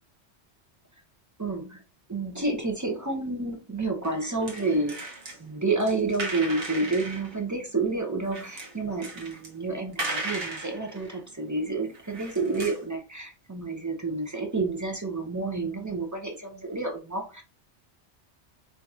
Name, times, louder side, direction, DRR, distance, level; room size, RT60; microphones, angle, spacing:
voice 1, 1.4-1.8 2.1-5.1 5.4-17.4, right 3 dB, 25° right, 0.5 m, -29 dB
sound 1, 4.0-5.4 5.8-7.4 8.3-9.5 9.9-11.5 11.8-12.9, right 2 dB, 60° right, 1.2 m, -36 dB
4.6 x 2.8 x 2.4 m
omnidirectional pair, 1.2 m